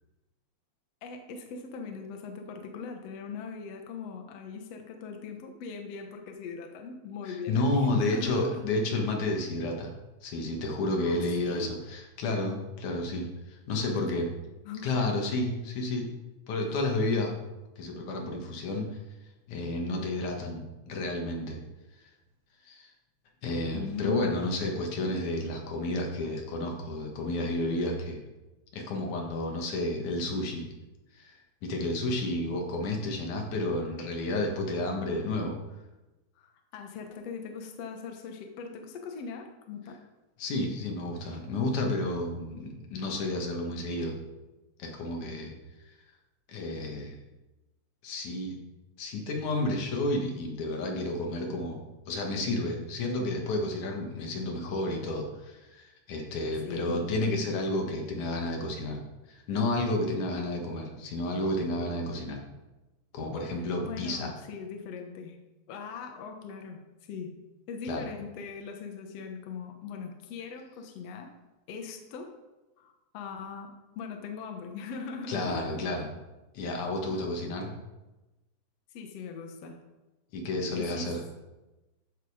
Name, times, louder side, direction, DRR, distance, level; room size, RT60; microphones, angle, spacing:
voice 1, 1.0-8.7 11.0-11.7 13.8-14.3 14.7-15.1 16.6-16.8 23.7-24.3 36.4-40.0 56.6-57.1 63.8-65.4 65.7-66.8 67.1-67.4 67.7-71.3 71.7-72.3 72.8-75.9 77.0-77.3 78.9-79.8 80.7-81.1, left 5 dB, 65° left, 4 dB, 2.1 m, -40 dB
voice 2, 7.2-9.9 10.2-14.2 14.8-16.1 16.5-17.3 17.8-18.9 19.5-21.6 22.7-22.9 23.4-28.2 28.7-30.7 31.1-31.3 31.6-35.6 40.4-44.2 44.8-45.5 45.8-45.9 46.5-47.2 48.0-48.6 49.0-51.8 52.1-59.0 59.3-62.4 63.1-64.3 67.8-68.1 75.3-76.1 76.5-77.7 80.3-81.2, left 2 dB, 80° left, 1 dB, 3.1 m, -31 dB
14.0 x 6.8 x 4.9 m, 1.1 s
omnidirectional pair, 3.4 m